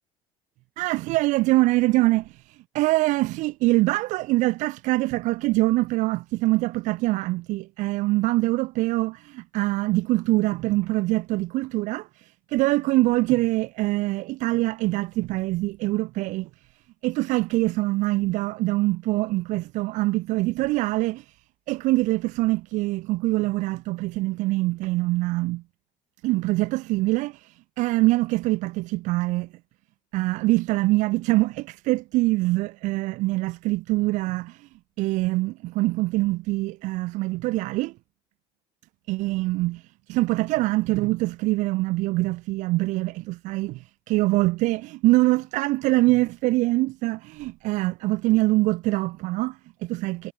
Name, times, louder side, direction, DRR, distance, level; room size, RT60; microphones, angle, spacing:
voice 1, 0.8-16.5 17.0-21.4 21.7-25.6 26.2-29.5 30.1-34.7 35.0-37.9 39.1-50.3, right 20 dB, 70° right, 2.3 m, -24 dB
cardioid pair, 120°, 13 cm